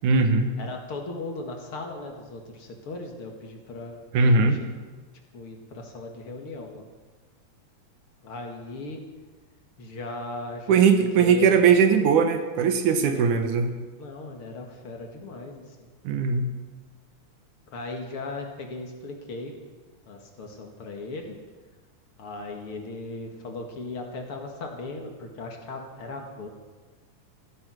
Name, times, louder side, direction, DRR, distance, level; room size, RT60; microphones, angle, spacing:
voice 1, 0.0-0.5 4.1-4.6 10.7-13.7 16.0-16.5, right 5 dB, 90° right, 7 dB, 2.8 m, -20 dB
voice 2, 0.6-4.7 5.3-6.8 8.2-9.0 9.8-10.8 11.2-11.6 13.1-13.4 14.0-15.9 17.7-19.5 20.1-21.4 22.2-26.5, left 2 dB, 50° left, 2 dB, 2.5 m, -37 dB
15.0 x 13.5 x 6.3 m, 1.3 s
omnidirectional pair, 3.4 m